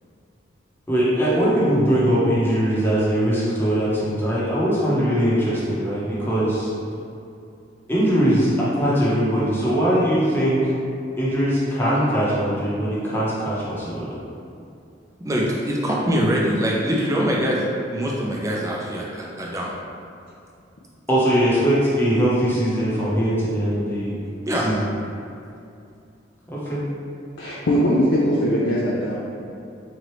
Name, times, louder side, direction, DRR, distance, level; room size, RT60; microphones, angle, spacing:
voice 1, 0.9-6.7 7.9-10.6 11.2-14.2 21.1-24.1 24.6-24.8 26.5-26.8, equal, 10° left, -8 dB, 0.8 m, -21 dB
voice 2, 15.2-19.7 24.5-24.7, equal, 15° right, -3 dB, 0.5 m, -23 dB
voice 3, 27.4-29.2, equal, 65° left, -6 dB, 0.5 m, -20 dB
3.8 x 3.2 x 3.1 m, 2.6 s
head